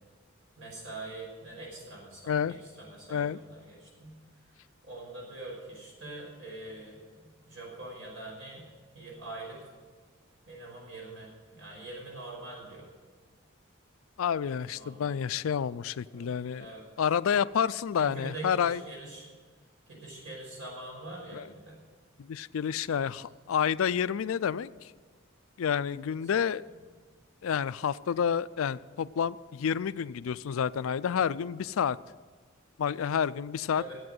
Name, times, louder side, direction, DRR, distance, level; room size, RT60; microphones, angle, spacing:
voice 1, 0.6-4.2 4.8-8.7 8.9-9.6 10.5-12.9 14.8-15.5 16.1-16.8 18.0-19.3 19.9-21.8 26.7-26.8 31.1-31.2 33.8-34.0, right 2 dB, 75° right, -3 dB, 5.5 m, -44 dB
voice 2, 14.2-16.7 17.0-18.8 21.3-21.4 22.2-24.9 25.6-26.6 27.4-32.0 32.8-33.8, left 7 dB, 80° left, 17 dB, 0.4 m, -29 dB
14.5 x 8.6 x 7.7 m, 1.5 s
head